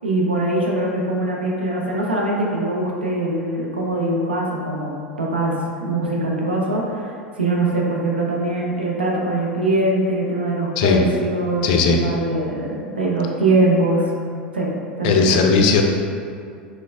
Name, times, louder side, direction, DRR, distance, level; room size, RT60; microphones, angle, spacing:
voice 1, 0.0-4.9 5.2-14.1 14.5-14.7 15.0-15.4, right 2 dB, 85° right, -2 dB, 0.4 m, -22 dB
voice 2, 11.6-12.0 15.0-15.8, left 5 dB, 55° left, 3 dB, 0.3 m, -17 dB
3.2 x 2.9 x 2.4 m, 2.3 s
figure-of-eight pair, 80°, 5 cm